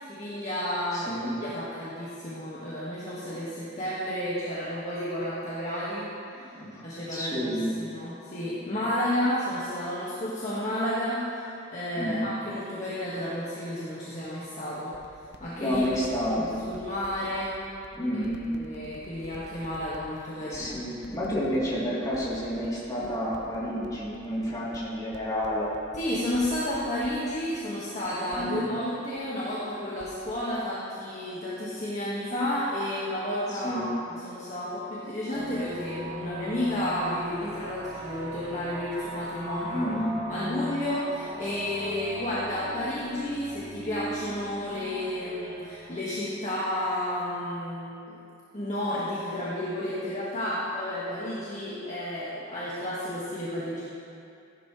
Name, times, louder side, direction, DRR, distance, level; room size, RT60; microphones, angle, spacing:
voice 1, 0.1-1.1 1.4-6.5 6.8-14.9 15.4-15.8 16.4-17.6 18.5-20.8 25.9-39.9 40.3-48.2 48.5-53.8, left 1 dB, 40° left, -9 dB, 1.8 m, -32 dB
voice 2, 0.9-1.4 6.3-6.8 7.1-7.8 8.7-8.8 11.9-12.4 15.6-16.7 17.9-18.5 20.4-25.7 28.3-28.7 33.6-33.9 39.5-40.2, equal, 20° left, -9 dB, 3.3 m, -30 dB
sound 1, 14.5-27.6 28.0-28.4 28.6-28.7 29.2-29.3 29.7-30.3 30.6-30.7, right 2 dB, 60° right, 0.9 m, -48 dB
sound 2, 35.3-46.0, equal, 35° right, 2.1 m, -38 dB
15.5 x 11.5 x 3.3 m, 2.5 s
head